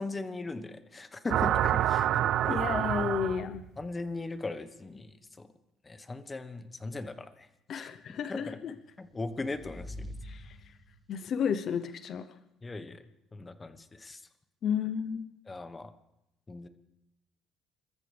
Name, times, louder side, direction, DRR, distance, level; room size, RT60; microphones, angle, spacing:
voice 1, 0.0-2.6 3.8-5.5 5.9-7.5 7.7-7.9 8.3-8.6 9.0-9.9 12.6-13.0 13.3-14.2 15.5-15.9 16.5-16.7, left 3 dB, 20° left, 11 dB, 1.2 m, -39 dB
sound 1, 1.3-3.7, right 11 dB, 65° right, 0.5 m, -27 dB
voice 2, 2.5-3.6 7.7-8.7 10.2-10.6 11.1-12.3 14.6-15.3, left 7 dB, 55° left, 11 dB, 0.8 m, -32 dB
sound 2, 8.8-11.2, left 1 dB, 25° right, 2.5 m, -45 dB
28.5 x 14.0 x 3.4 m, 0.86 s
cardioid pair, 100°, 0 cm